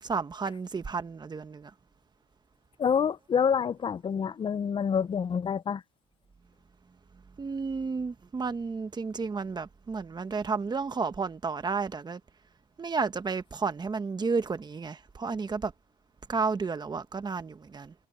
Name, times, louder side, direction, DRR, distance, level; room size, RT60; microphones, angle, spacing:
voice 1, 0.0-1.7 7.4-12.2 12.8-15.7 16.3-17.9, right 4 dB, 25° right, 1.3 m, -32 dB
voice 2, 2.8-5.8, left 7 dB, 30° left, 0.5 m, -27 dB
cardioid pair, 110°, 17 cm